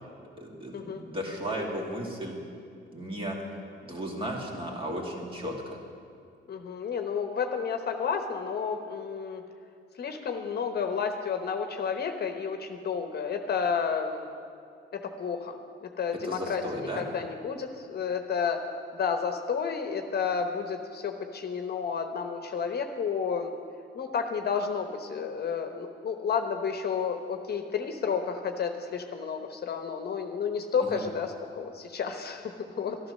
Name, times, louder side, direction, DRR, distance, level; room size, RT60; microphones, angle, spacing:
voice 1, 0.4-2.4 2.9-3.4 3.8-5.8 16.2-17.0 30.8-31.0, equal, 25° right, -1 dB, 2.6 m, -35 dB
voice 2, 6.5-9.4 10.0-14.3 14.9-18.6 18.9-23.5 23.9-33.0, left 6 dB, 55° left, 5 dB, 1.0 m, -31 dB
12.5 x 10.5 x 6.5 m, 2.4 s
cardioid pair, 90°, 20 cm